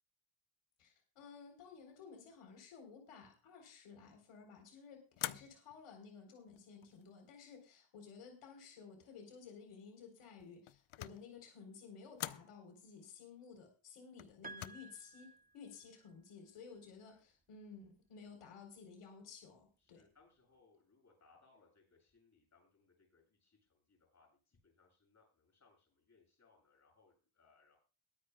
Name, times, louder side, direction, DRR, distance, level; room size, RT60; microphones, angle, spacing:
voice 1, 0.8-20.1, left 5 dB, 90° left, 3 dB, 4.0 m, -55 dB
sound 1, 5.2-5.9 6.6-7.1 10.4-11.3 12.2-12.5 14.2-14.7, left 14 dB, 75° left, 0.8 m, -45 dB
Piano, 14.4-16.1, right 3 dB, 20° right, 0.7 m, -54 dB
voice 2, 16.8-17.2 19.8-27.8, left 4 dB, 35° left, 0 dB, 7.7 m, -70 dB
22.0 x 9.8 x 2.3 m, 0.35 s
cardioid pair, 115°, 49 cm